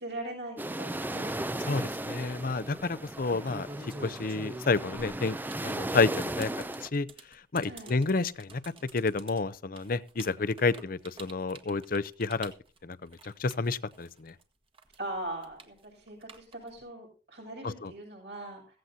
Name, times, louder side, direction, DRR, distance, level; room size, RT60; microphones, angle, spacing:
voice 1, 0.0-1.3 7.6-8.0 14.9-18.8, right 1 dB, 65° right, 6.6 m, -40 dB
sound 1, 0.6-6.9, right 1 dB, 10° right, 0.5 m, -36 dB
voice 2, 1.7-3.7 4.0-5.4 5.6-6.5 6.8-7.1 7.5-8.6 8.9-12.5 12.8-13.1 13.4-14.3 17.6-17.9, left 3 dB, 55° left, 0.7 m, -30 dB
sound 2, 3.1-14.4 14.7-16.8, right 2 dB, 30° right, 1.6 m, -47 dB
16.0 x 15.5 x 2.8 m
head